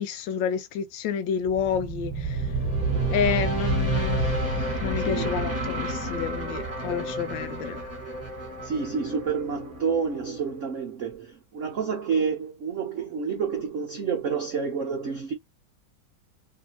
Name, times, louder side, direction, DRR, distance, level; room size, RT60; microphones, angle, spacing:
voice 1, 0.0-2.4 3.1-4.3 4.8-7.8, left 7 dB, 75° left, 1.2 m, -29 dB
sound 1, 1.5-10.6, right 2 dB, 10° right, 1.2 m, -29 dB
voice 2, 5.0-5.4 6.8-7.1 8.6-15.3, right 6 dB, 75° right, 0.7 m, -29 dB
3.2 x 2.7 x 2.8 m
omnidirectional pair, 2.2 m